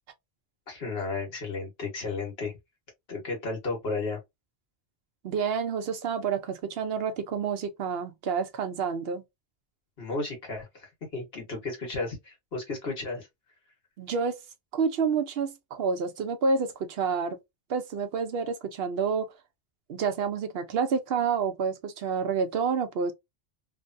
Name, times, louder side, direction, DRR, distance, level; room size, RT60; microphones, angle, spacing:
voice 1, 0.7-2.5 3.1-4.2 10.0-13.3, left 3 dB, 75° left, 1.6 m, -33 dB
voice 2, 5.2-9.2 14.0-14.4 14.7-17.4 17.7-19.3 19.9-23.1, right 5 dB, 75° right, 0.8 m, -28 dB
3.2 x 2.2 x 2.5 m
omnidirectional pair, 1.0 m